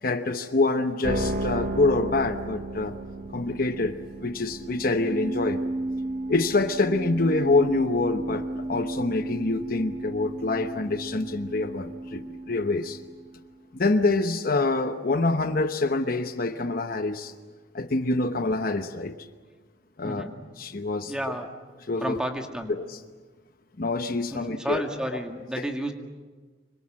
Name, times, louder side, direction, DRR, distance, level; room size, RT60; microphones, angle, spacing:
voice 1, 0.0-3.0 3.3-5.6 6.3-13.0 13.7-17.3 17.7-19.1 20.0-20.3 20.6-21.1 21.9-22.2 22.9-23.0 23.8-24.8 25.6-25.7, left 2 dB, 50° left, 8 dB, 0.9 m, -26 dB
sound 1, 1.0-13.3, right 1 dB, 45° right, 1.9 m, -33 dB
voice 2, 20.0-20.3 21.0-21.5 22.0-22.8 24.3-25.9, right 1 dB, 5° right, 3 dB, 2.0 m, -32 dB
26.0 x 24.5 x 7.6 m, 1.4 s
head